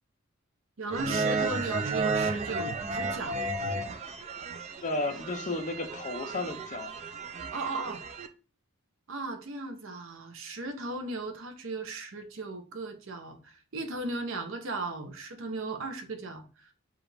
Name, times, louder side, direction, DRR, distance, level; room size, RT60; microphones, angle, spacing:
voice 1, 0.8-3.4 7.5-8.0 9.1-16.7, right 2 dB, 60° right, 0.7 m, -36 dB
sound 1, 0.9-8.3, right 3 dB, 30° right, 0.3 m, -33 dB
voice 2, 4.8-7.0, left 2 dB, 35° left, 0.5 m, -33 dB
4.8 x 2.4 x 3.2 m
head